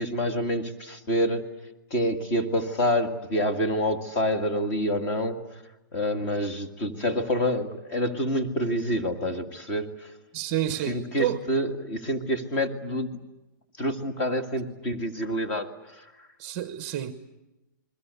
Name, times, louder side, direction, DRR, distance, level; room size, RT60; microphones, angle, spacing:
voice 1, 0.0-1.5 1.9-5.6 5.9-10.1 10.8-13.2 13.8-16.1, equal, 20° left, 2.0 m, -27 dB
voice 2, 10.3-11.4 16.4-17.1, right 12 dB, 20° right, 1.0 m, -29 dB
29.0 x 22.0 x 8.3 m
hypercardioid pair, 175°, 11 cm